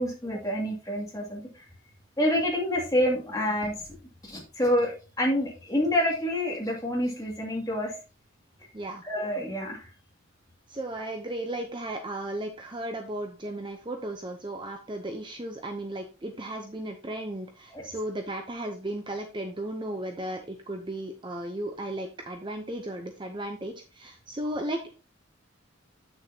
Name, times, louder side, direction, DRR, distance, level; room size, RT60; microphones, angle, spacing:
voice 1, 0.0-1.6 2.2-3.7 4.2-7.9 9.0-9.9 17.7-17.8, equal, 15° left, -2 dB, 2.2 m, -27 dB
voice 2, 10.7-24.9, right 1 dB, 25° right, 5 dB, 0.7 m, -35 dB
8.1 x 6.6 x 2.8 m, 0.33 s
head